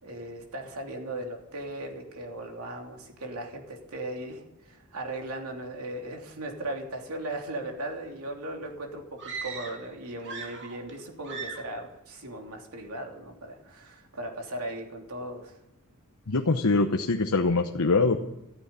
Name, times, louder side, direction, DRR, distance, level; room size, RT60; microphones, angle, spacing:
voice 1, 0.0-15.6, right 1 dB, 80° right, 1 dB, 3.1 m, -37 dB
sound 1, 9.2-9.9 10.2-11.0 11.2-11.8, right 5 dB, 55° right, 2.8 m, -39 dB
voice 2, 16.3-18.2, left 3 dB, 80° left, 4 dB, 0.9 m, -23 dB
14.0 x 9.6 x 9.7 m, 0.91 s
head